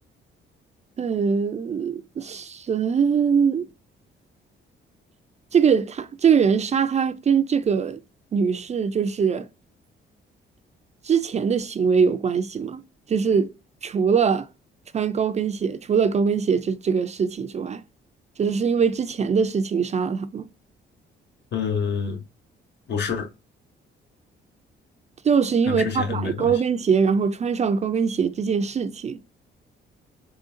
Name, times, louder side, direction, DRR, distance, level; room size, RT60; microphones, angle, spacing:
voice 1, 1.0-3.7 5.5-8.0 8.3-9.5 11.0-12.8 13.1-13.5 13.8-14.5 14.9-17.8 18.4-20.5 25.2-29.2, right 6 dB, 35° right, 0.4 m, -22 dB
voice 2, 21.5-22.2 22.9-23.3 25.7-26.6, left 6 dB, 60° left, 1.0 m, -27 dB
3.7 x 3.4 x 2.7 m
cardioid pair, 90°, 20 cm